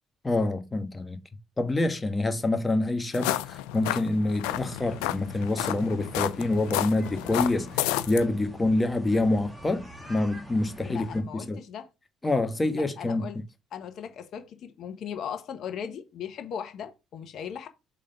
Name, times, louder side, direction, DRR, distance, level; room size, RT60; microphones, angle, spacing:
voice 1, 0.2-1.2 1.6-11.6 12.2-13.2, left 2 dB, 25° left, 1.4 m, -27 dB
sound 1, 3.1-8.2, left 15 dB, 85° left, 0.4 m, -31 dB
sound 2, 4.4-11.2, right 1 dB, 5° right, 2.0 m, -46 dB
voice 2, 10.8-11.9 12.7-13.4 13.7-17.7, left 8 dB, 65° left, 1.1 m, -38 dB
5.2 x 3.6 x 5.6 m
hypercardioid pair, 55°, 0 cm